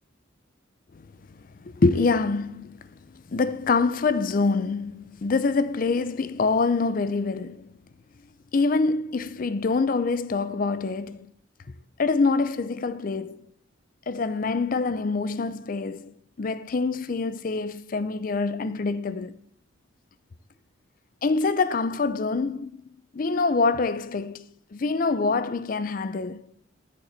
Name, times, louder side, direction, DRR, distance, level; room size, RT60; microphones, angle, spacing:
voice 1, 1.6-2.8 3.3-7.7 8.5-11.3 12.0-13.4 14.1-19.3 21.2-22.8 23.1-26.4, left 4 dB, 45° left, 0.4 m, -25 dB
13.0 x 7.2 x 4.0 m
head